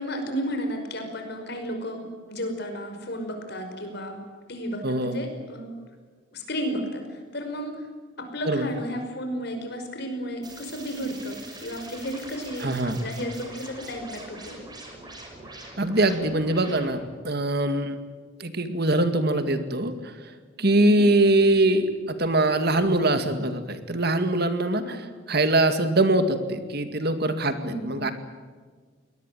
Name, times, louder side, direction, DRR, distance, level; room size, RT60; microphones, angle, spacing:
voice 1, 0.0-5.7 6.3-7.8 8.2-14.6 20.8-21.1 24.8-25.0 27.6-28.0, equal, 55° left, 5 dB, 5.5 m, -33 dB
voice 2, 4.8-5.2 8.5-8.7 12.6-13.0 15.8-18.0 18.4-20.1 20.6-28.1, right 2 dB, 55° right, 9 dB, 2.2 m, -23 dB
sound 1, 10.4-17.2, right 2 dB, 20° right, 6.0 m, -43 dB
23.0 x 19.0 x 9.2 m, 1.5 s
head